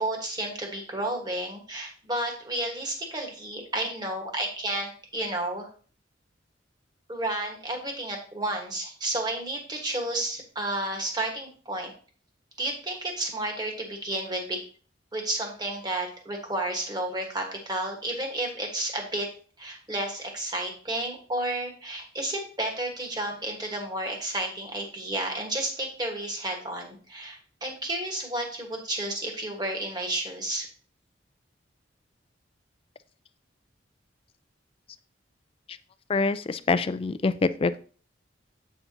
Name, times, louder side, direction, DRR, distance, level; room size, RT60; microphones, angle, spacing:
voice 1, 0.0-5.7 7.1-11.9 12.6-14.6 15.1-19.3 19.6-30.7, right 1 dB, 20° right, 1 dB, 1.4 m, -31 dB
voice 2, 36.1-37.8, left 4 dB, 30° left, 13 dB, 0.3 m, -25 dB
8.2 x 5.6 x 2.8 m, 0.42 s
head